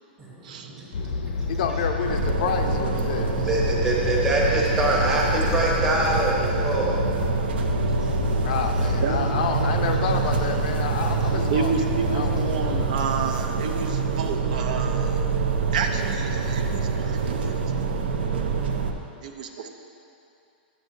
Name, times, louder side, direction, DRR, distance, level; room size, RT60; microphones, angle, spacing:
voice 1, 0.2-0.9 1.4-1.5 3.2-7.0 7.7-8.4 11.0-11.1, right 1 dB, 10° right, -4 dB, 0.9 m, -25 dB
sound 1, 0.9-12.9, left 3 dB, 80° left, 0.8 m, -29 dB
voice 2, 1.5-3.5 8.4-12.9, left 5 dB, 50° left, 4 dB, 0.5 m, -29 dB
sound 2, 2.0-18.9, right 5 dB, 85° right, 0.7 m, -26 dB
voice 3, 9.0-9.4 11.5-15.3 15.7-17.5 19.2-19.7, right 5 dB, 50° right, 5 dB, 0.5 m, -30 dB
10.5 x 7.9 x 2.7 m, 2.6 s
supercardioid pair, 175°, 5 cm